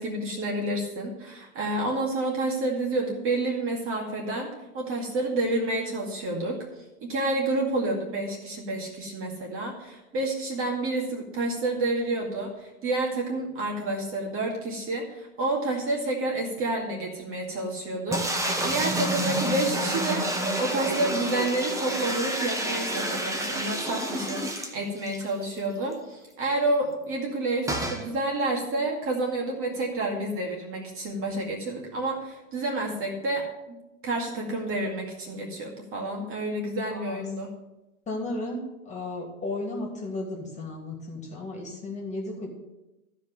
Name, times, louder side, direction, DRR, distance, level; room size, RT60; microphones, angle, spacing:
voice 1, 0.0-6.7 7.0-18.2 18.6-20.3 20.6-33.8 34.0-37.5, right 2 dB, 30° right, -1 dB, 2.2 m, -29 dB
sound 1, 18.1-25.3 25.6-25.7 25.9-26.0 27.7-28.0, right 1 dB, 5° right, 1.2 m, -29 dB
voice 2, 36.9-37.3 38.1-42.5, left 2 dB, 15° left, -1 dB, 2.6 m, -34 dB
12.5 x 5.3 x 7.5 m, 0.99 s
hypercardioid pair, 115°, 43 cm